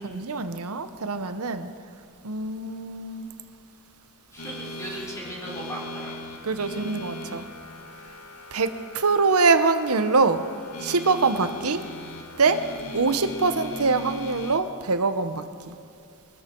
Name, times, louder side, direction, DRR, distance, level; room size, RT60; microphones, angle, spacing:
voice 1, 0.0-1.7 2.2-3.3 6.4-7.5 8.5-10.5 10.8-11.8 12.4-12.7 12.9-15.7, right 4 dB, 80° right, 0.9 m, -24 dB
voice 2, 4.3-6.1, right 1 dB, 15° left, 4.0 m, -37 dB
sound 1, 4.4-14.6, left 1 dB, 85° left, 1.7 m, -39 dB
23.5 x 13.0 x 4.6 m
head